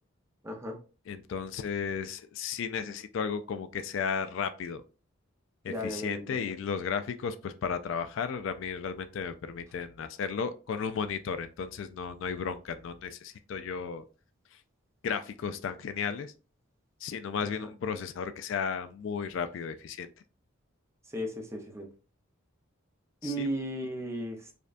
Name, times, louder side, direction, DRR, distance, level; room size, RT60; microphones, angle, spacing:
voice 1, 0.4-0.8 5.7-6.6 17.4-17.7 21.0-21.9 23.2-24.5, equal, 15° right, 0.6 m, -36 dB
voice 2, 1.1-4.8 5.6-14.0 15.0-16.3 17.0-20.1 23.2-23.5, left 6 dB, 60° left, 0.3 m, -34 dB
5.0 x 2.3 x 2.5 m
head